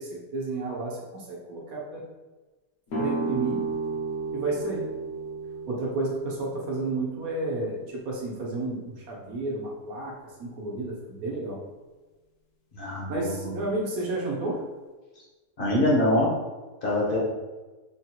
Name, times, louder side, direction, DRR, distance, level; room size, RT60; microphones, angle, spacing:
voice 1, 0.0-2.0 3.0-3.7 4.3-4.9 5.7-11.6 13.1-14.7, right 2 dB, 65° right, -3 dB, 1.1 m, -31 dB
sound 1, 2.9-8.6, right 4 dB, 70° left, 1.2 m, -34 dB
voice 2, 12.7-13.5 15.6-16.3 16.8-17.2, left 1 dB, 45° left, -4 dB, 0.8 m, -24 dB
3.7 x 2.4 x 2.8 m, 1.2 s
omnidirectional pair, 1.7 m